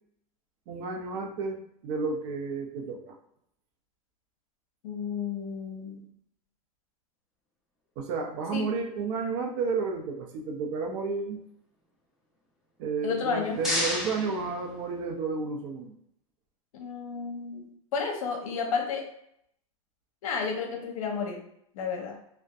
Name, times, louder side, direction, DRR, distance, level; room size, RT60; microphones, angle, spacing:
voice 1, 0.7-3.2 8.0-11.4 12.8-15.9, right 4 dB, 55° right, 3 dB, 0.5 m, -32 dB
voice 2, 4.8-6.1 8.5-8.7 13.0-13.6 16.7-19.0 20.2-21.4 21.7-22.2, left 5 dB, 75° left, 2 dB, 0.8 m, -32 dB
sound 1, 13.1-15.3, left 1 dB, ahead, 0.9 m, -33 dB
2.6 x 2.1 x 2.3 m, 0.74 s
hypercardioid pair, 120°, 18 cm